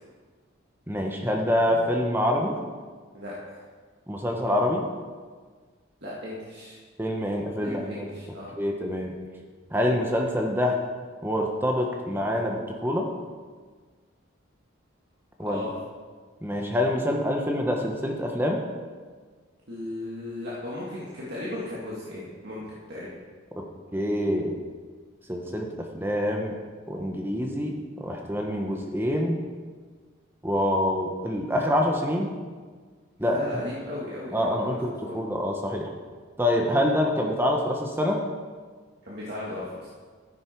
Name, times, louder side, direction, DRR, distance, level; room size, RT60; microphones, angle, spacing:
voice 1, 0.9-2.6 4.1-4.9 7.0-8.0 8.6-9.1 9.7-10.8 11.2-13.1 15.4-15.6 16.4-18.6 23.6-23.7 23.9-24.5 25.3-26.5 26.9-29.4 30.4-32.3 33.2-33.4 34.3-35.9 36.4-38.2, left 1 dB, 10° right, 1 dB, 1.0 m, -26 dB
voice 2, 3.1-3.6 6.0-6.7 7.6-8.5 15.4-15.7 19.7-23.1 33.3-34.7 35.0-35.2 36.7-36.8 39.0-39.9, left 1 dB, 50° right, -7 dB, 2.2 m, -36 dB
13.5 x 10.5 x 4.6 m, 1.5 s
head